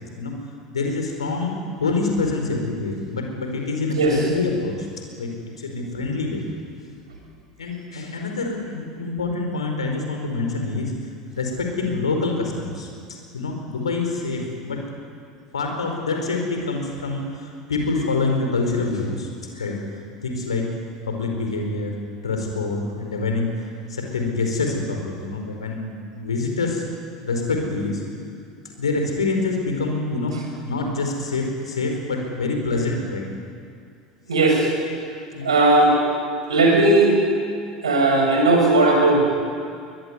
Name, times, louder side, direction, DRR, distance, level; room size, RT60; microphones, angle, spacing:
voice 1, 0.7-4.9 5.2-5.3 5.6-6.4 7.6-10.9 11.3-12.9 13.3-14.8 15.5-20.7 21.1-21.9 22.2-26.8 27.2-28.0 28.8-30.4 30.6-33.3 35.3-35.5, left 3 dB, 75° left, 3 dB, 4.7 m, -26 dB
voice 2, 34.3-34.7 35.4-36.0 36.5-37.1 37.8-39.3, right 2 dB, 75° right, 0 dB, 7.4 m, -17 dB
22.5 x 21.0 x 9.7 m, 2.2 s
figure-of-eight pair, 75°, 3 cm